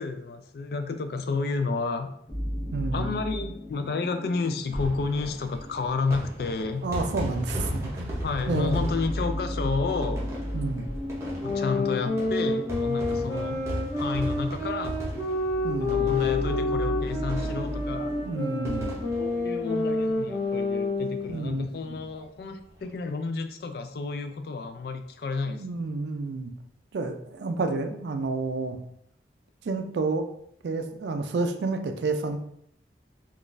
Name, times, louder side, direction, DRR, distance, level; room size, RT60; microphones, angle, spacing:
voice 1, 0.0-2.1 2.9-6.8 8.2-10.2 11.4-13.6 14.0-15.0 15.8-18.2 19.2-25.6, left 4 dB, 60° left, 8 dB, 0.3 m, -30 dB
sound 1, 2.3-7.3 7.8-7.9 8.2-19.0, left 1 dB, 35° left, 0.7 m, -35 dB
voice 2, 2.7-3.1 6.8-8.1 8.5-8.7 10.5-10.9 15.6-16.1 18.2-19.0 21.3-22.0 25.5-26.5 26.9-28.8 29.6-30.3 30.6-32.4, right 3 dB, 75° right, 7 dB, 0.3 m, -30 dB
sound 2, 4.6-20.6 20.9-21.0 21.2-21.3 22.6-22.8, equal, 15° right, 0.7 m, -37 dB
sound 3, 11.4-21.4, left 2 dB, 15° left, 1.1 m, -29 dB
3.8 x 2.4 x 2.5 m, 0.72 s
head